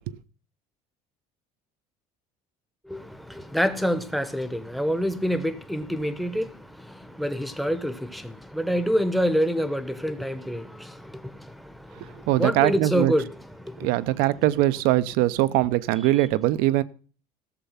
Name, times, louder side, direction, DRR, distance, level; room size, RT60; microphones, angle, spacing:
voice 1, 2.9-14.3, equal, ahead, 0.9 m, -27 dB
voice 2, 12.3-13.1 13.8-16.8, right 16 dB, 80° right, 0.7 m, -22 dB
15.0 x 6.9 x 5.7 m
cardioid pair, 130°, 15 cm